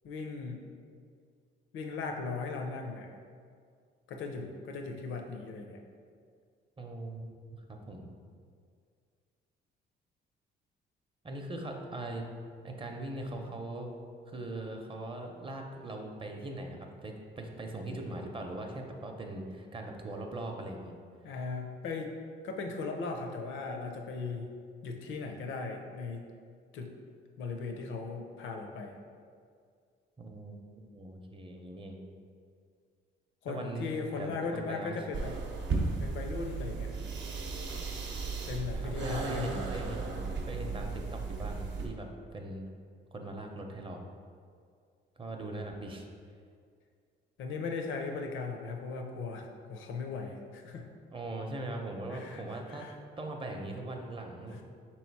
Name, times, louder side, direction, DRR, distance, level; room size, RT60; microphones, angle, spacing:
voice 1, 0.0-0.6 1.7-3.1 4.1-5.8 21.2-22.1 22.4-24.5 24.8-26.3 26.7-26.9 27.4-29.0 33.4-35.3 36.0-37.1 38.5-39.9 47.4-50.9 52.1-52.9, left 4 dB, 80° left, 3 dB, 0.6 m, -38 dB
voice 2, 6.8-7.3 7.7-8.1 11.2-12.2 12.6-13.9 14.3-20.9 30.2-32.0 33.5-33.8 34.2-35.0 38.8-42.7 43.1-44.0 45.2-46.1 51.1-52.9 53.2-54.6, right 2 dB, 25° right, 2 dB, 0.6 m, -40 dB
sound 1, 35.1-41.9, right 4 dB, 65° right, 0.7 m, -35 dB
3.8 x 3.0 x 4.6 m, 2.2 s
cardioid pair, 90°, 20 cm